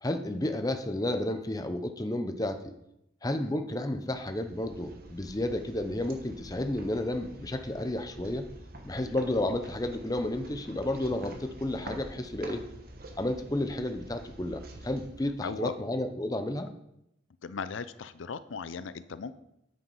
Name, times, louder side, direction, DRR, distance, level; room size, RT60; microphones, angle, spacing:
voice 1, 0.0-2.7 3.2-8.5 8.8-12.6 13.2-16.7, left 1 dB, 20° left, 7 dB, 0.7 m, -32 dB
sound 1, 3.9-16.0, right 1 dB, 50° right, 1.3 m, -47 dB
voice 2, 15.4-15.8 17.4-19.3, left 5 dB, 80° left, 14 dB, 0.5 m, -37 dB
8.6 x 7.6 x 5.5 m, 0.82 s
head